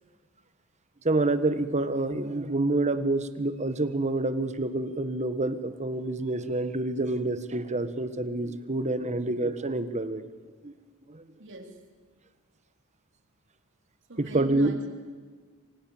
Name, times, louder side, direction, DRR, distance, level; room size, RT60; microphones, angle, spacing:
voice 1, 1.0-10.3 10.6-10.7 11.1-11.2 14.2-14.7, right 2 dB, 30° right, 11 dB, 1.5 m, -27 dB
voice 2, 11.4-11.8 14.1-14.9, right 1 dB, 60° right, 4 dB, 3.8 m, -40 dB
28.5 x 24.5 x 7.4 m, 1.5 s
head